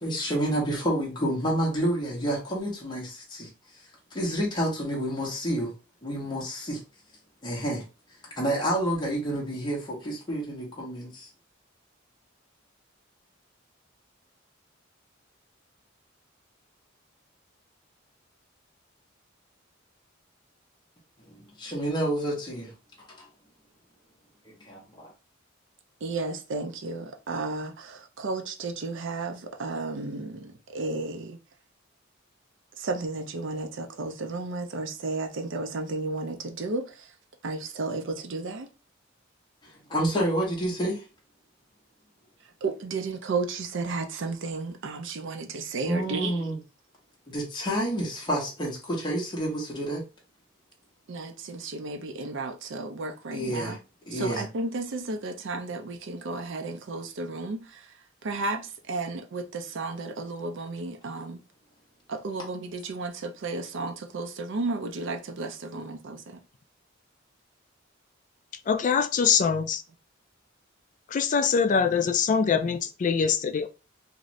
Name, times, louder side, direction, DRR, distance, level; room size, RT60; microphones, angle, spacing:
voice 1, 0.0-3.5 4.1-5.7 6.0-6.8 7.4-7.8 8.4-11.3 21.2-22.7 23.2-23.3 24.4-25.1 39.6-41.0 45.8-46.6 47.3-50.0 53.3-53.8 54.1-54.5, right 1 dB, 25° left, 0.9 m, -29 dB
voice 2, 26.0-31.4 32.8-37.0 37.4-38.7 42.6-46.4 51.1-53.8 54.1-57.8 58.2-61.4 62.1-66.4, right 3 dB, 65° right, 0.5 m, -33 dB
voice 3, 68.7-69.8 71.1-73.7, left 6 dB, 40° left, 0.3 m, -23 dB
2.6 x 2.5 x 3.1 m
head